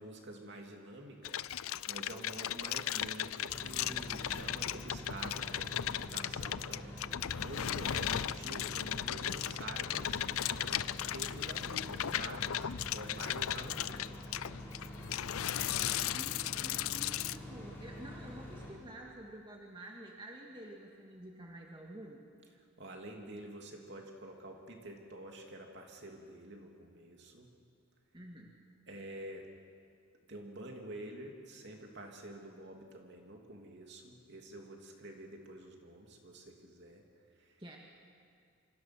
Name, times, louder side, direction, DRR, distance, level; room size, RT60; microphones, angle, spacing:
voice 1, 0.0-1.4 1.9-14.0 18.6-18.7 22.8-27.5 28.9-29.5 30.3-37.0 37.4-37.6, right 1 dB, 50° right, 1 dB, 3.0 m, -48 dB
sound 1, 1.2-17.4, left 11 dB, 75° left, 0.5 m, -36 dB
sound 2, 3.5-18.7, equal, 10° left, 5.2 m, -47 dB
voice 2, 16.0-22.3 28.1-28.6 37.6-37.8, right 1 dB, 20° right, -1 dB, 1.9 m, -49 dB
27.5 x 25.5 x 6.2 m, 2.3 s
head